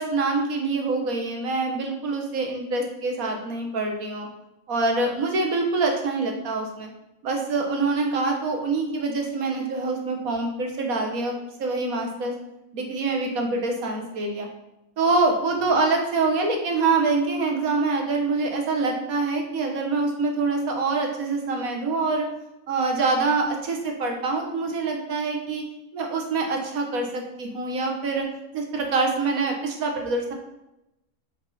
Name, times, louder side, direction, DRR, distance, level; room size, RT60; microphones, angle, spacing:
voice 1, 0.0-4.3 4.7-6.9 7.2-12.3 12.7-14.5 15.0-22.3 22.7-25.6 25.9-28.3 28.5-30.3, right 3 dB, 80° right, 2 dB, 1.5 m, -25 dB
7.1 x 4.2 x 4.1 m, 0.91 s
omnidirectional pair, 1.5 m